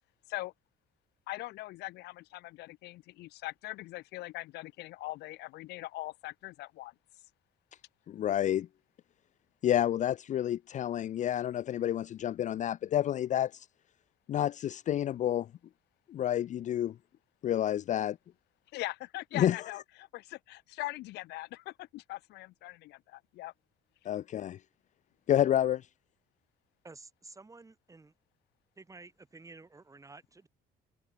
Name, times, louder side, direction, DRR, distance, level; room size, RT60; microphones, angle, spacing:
voice 1, 1.3-6.9 18.7-23.5, left 18 dB, 80° left, 1.2 m, -41 dB
voice 2, 8.1-8.7 9.6-13.7 14.3-15.5 16.1-16.9 17.4-18.2 19.3-19.6 24.1-24.6 25.3-25.8, left 11 dB, 45° left, 0.5 m, -29 dB
voice 3, 26.8-28.1 28.8-30.5, right 3 dB, 20° right, 6.7 m, -52 dB
cardioid pair, 110°, 17 cm